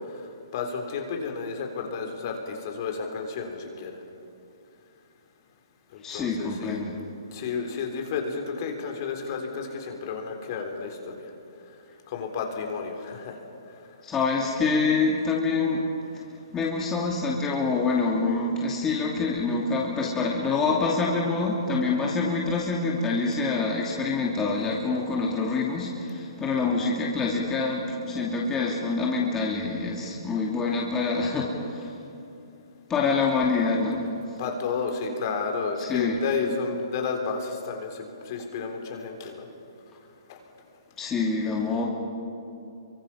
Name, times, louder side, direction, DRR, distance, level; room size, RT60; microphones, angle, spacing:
voice 1, 0.5-3.9 5.9-6.8 7.3-11.3 12.1-13.4 34.4-39.4 40.3-40.4, left 5 dB, 45° left, 3 dB, 3.9 m, -31 dB
voice 2, 6.0-7.0 14.0-15.8 16.5-31.9 32.9-34.0 35.8-36.2 41.0-41.8, left 4 dB, 15° left, -3 dB, 2.6 m, -26 dB
28.5 x 24.0 x 5.7 m, 2.7 s
hypercardioid pair, 140°, 2 cm